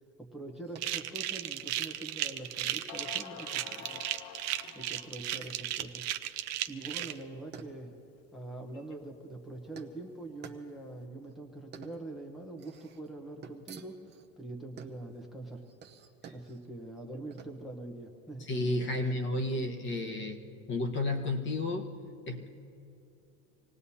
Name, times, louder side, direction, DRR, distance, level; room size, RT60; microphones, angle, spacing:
voice 1, 0.2-4.0 4.7-7.9 8.3-15.6 16.3-18.5 19.5-19.6, right 2 dB, ahead, 1 dB, 1.0 m, -44 dB
sound 1, 0.5-19.3, right 6 dB, 25° right, 0.9 m, -54 dB
sound 2, 0.8-7.1, right 13 dB, 40° right, 0.6 m, -35 dB
sound 3, 1.8-1.9 2.5-2.6 2.9-5.3, left 10 dB, 75° left, 0.8 m, -48 dB
voice 2, 18.4-20.4 20.7-21.9 22.3-22.5, left 2 dB, 30° left, 3 dB, 1.2 m, -32 dB
26.5 x 18.5 x 2.8 m, 2.7 s
supercardioid pair, 145°, 40 cm